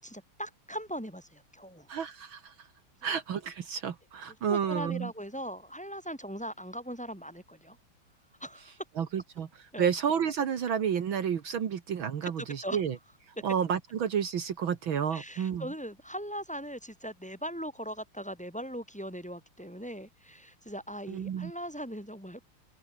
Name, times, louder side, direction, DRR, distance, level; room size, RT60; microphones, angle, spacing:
voice 1, 0.0-1.9 3.0-3.1 4.5-7.8 8.4-8.8 9.7-9.9 12.2-12.3 12.6-12.8 15.1-22.5, equal, 5° left, 5.6 m, -40 dB
voice 2, 1.9-2.7 3.0-5.1 9.0-9.5 9.8-13.0 13.3-15.7 21.1-21.5, right 8 dB, 65° right, 2.3 m, -31 dB
open air
omnidirectional pair, 2.4 m